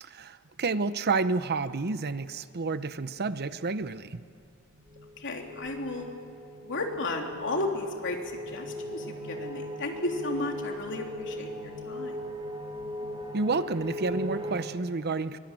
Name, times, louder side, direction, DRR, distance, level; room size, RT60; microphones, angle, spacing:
voice 1, 0.0-4.2 13.3-15.4, right 3 dB, 45° right, 13 dB, 0.7 m, -30 dB
sound 1, 4.7-14.6, equal, 25° right, 3.0 m, -39 dB
voice 2, 5.2-6.1 6.6-8.2 8.5-12.2, left 2 dB, 55° left, 2 dB, 3.3 m, -33 dB
23.5 x 21.0 x 8.8 m, 2.6 s
head